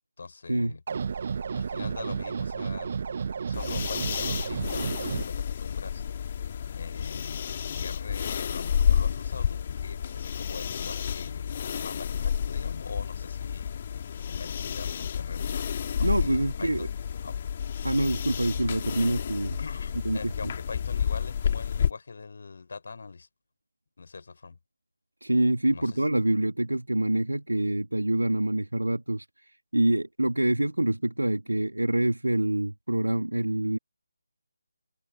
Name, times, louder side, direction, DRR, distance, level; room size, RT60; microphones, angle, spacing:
voice 1, 0.2-0.8 1.5-3.0 3.5-6.0 6.7-15.7 16.0-16.9 17.2-17.3 17.9-18.1 19.6-23.3 24.0-24.6 25.7-26.0, left 4 dB, 45° left, 4.2 m, -43 dB
sound 1, 0.9-5.2, right 6 dB, 40° right, 0.5 m, -32 dB
sound 2, 3.5-21.9, left 8 dB, 30° left, 2.5 m, -30 dB
voice 2, 16.0-16.9 17.8-19.6 20.0-20.5 25.2-33.8, right 1 dB, 75° right, 1.8 m, -26 dB
figure-of-eight pair, 155°, 0 cm